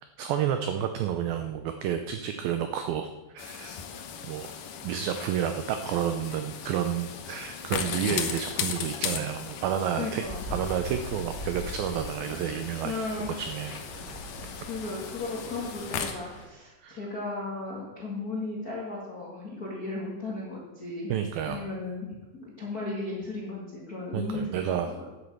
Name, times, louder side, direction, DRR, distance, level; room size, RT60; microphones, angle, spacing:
voice 1, 0.2-3.1 3.3-10.2 10.5-12.9 13.4-13.8 16.8-17.0 21.1-21.7 24.1-24.9, right 9 dB, 90° right, 7 dB, 2.0 m, -30 dB
sound 1, 3.4-16.1, left 7 dB, 75° left, 1.9 m, -37 dB
voice 2, 10.0-10.4 12.8-13.3 14.6-21.1 21.5-25.1, left 3 dB, 55° left, -4 dB, 1.0 m, -35 dB
Stream, 10.2-16.4, equal, 20° right, 1.4 m, -42 dB
10.0 x 8.4 x 7.1 m, 1.1 s
omnidirectional pair, 5.0 m